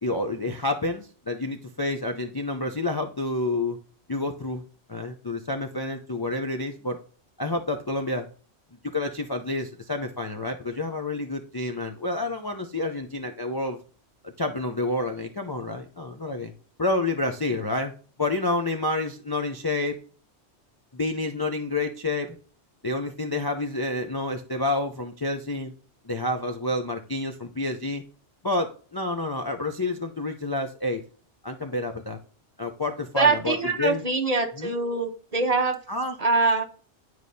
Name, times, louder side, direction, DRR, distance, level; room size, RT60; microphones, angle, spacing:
voice 1, 0.0-3.8 4.1-4.6 4.9-7.0 7.4-8.3 8.9-13.8 14.4-16.5 16.8-17.9 18.2-20.0 20.9-22.4 22.8-25.7 26.0-28.0 28.4-31.0 31.4-32.2 32.6-34.0 34.6-34.7 35.9-36.2, left 2 dB, 30° left, 3 dB, 0.4 m, -29 dB
voice 2, 33.2-35.8 36.2-36.6, right 3 dB, 35° right, 6 dB, 0.8 m, -23 dB
10.0 x 4.7 x 2.7 m, 0.41 s
omnidirectional pair, 1.2 m